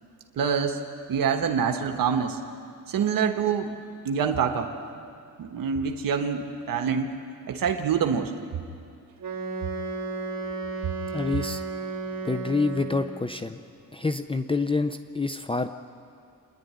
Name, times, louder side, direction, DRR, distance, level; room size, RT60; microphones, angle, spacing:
voice 1, 0.4-0.8 1.1-2.4 2.9-3.7 4.0-4.7 5.4-7.2 7.5-8.3, right 7 dB, 75° right, 5 dB, 1.4 m, -25 dB
Wind instrument woodwind instrument, 9.2-13.4, right 3 dB, 50° right, 3.3 m, -33 dB
voice 2, 11.1-11.6 12.2-13.6 13.9-15.7, left 3 dB, 15° left, 9 dB, 0.6 m, -27 dB
27.0 x 11.0 x 9.5 m, 2.4 s
cardioid pair, 95°, 35 cm